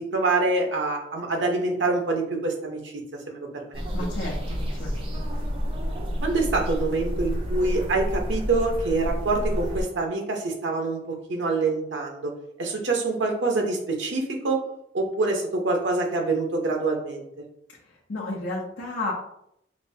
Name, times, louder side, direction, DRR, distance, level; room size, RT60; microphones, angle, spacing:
voice 1, 0.0-2.8 3.3-3.5 3.7-3.8 6.2-12.3 12.6-14.6 14.9-17.3, right 3 dB, 90° right, 2 dB, 0.8 m, -25 dB
sound 1, 3.7-9.8, equal, 30° right, 0.6 m, -29 dB
voice 2, 3.9-5.4 17.8-19.1, left 2 dB, 75° left, -6 dB, 0.8 m, -33 dB
5.1 x 2.2 x 2.7 m, 0.74 s
head